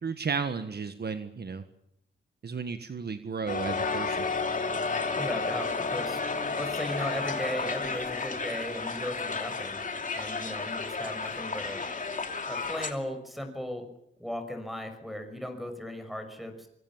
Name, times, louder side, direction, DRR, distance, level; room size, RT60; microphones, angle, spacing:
voice 1, 0.0-1.6 2.4-4.3, right 5 dB, 55° right, 9 dB, 1.6 m, -33 dB
Crowd, 3.5-12.9, left 4 dB, 40° left, 2.8 m, -32 dB
voice 2, 5.1-6.2 6.5-9.8 10.1-11.8 12.5-13.8 14.2-16.7, equal, ahead, 7 dB, 6.0 m, -36 dB
25.0 x 24.0 x 7.4 m, 0.77 s
wide cardioid pair, 130°, 21 cm